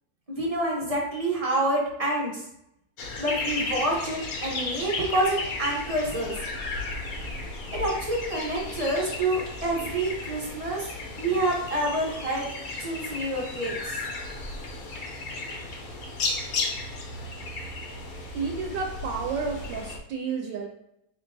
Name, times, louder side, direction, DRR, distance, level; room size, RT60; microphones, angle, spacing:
voice 1, 0.3-2.4 3.2-6.3 7.7-10.9 11.2-12.5 12.8-14.0, right 1 dB, 40° right, -3 dB, 0.5 m, -27 dB
sound 1, 3.0-20.0, left 3 dB, 60° left, 1.0 m, -34 dB
voice 2, 18.3-20.7, right 5 dB, 75° right, 2 dB, 1.2 m, -31 dB
4.9 x 3.7 x 2.6 m, 0.81 s
omnidirectional pair, 2.1 m